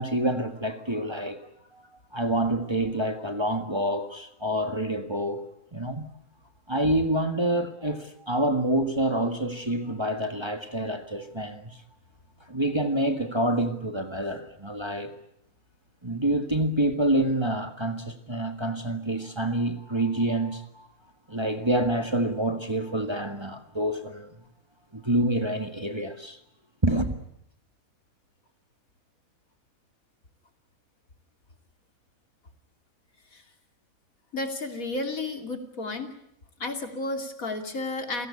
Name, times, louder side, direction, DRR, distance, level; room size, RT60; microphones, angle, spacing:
voice 1, 0.0-1.4 1.7-1.8 2.1-5.4 5.7-6.1 6.7-11.8 12.5-15.1 16.0-20.9 21.3-24.3 24.9-26.4 26.8-27.2, right 1 dB, 20° right, 1.8 m, -27 dB
voice 2, 34.3-36.1 36.6-38.3, left 2 dB, 75° left, 3.2 m, -32 dB
29.5 x 17.0 x 9.9 m
omnidirectional pair, 1.5 m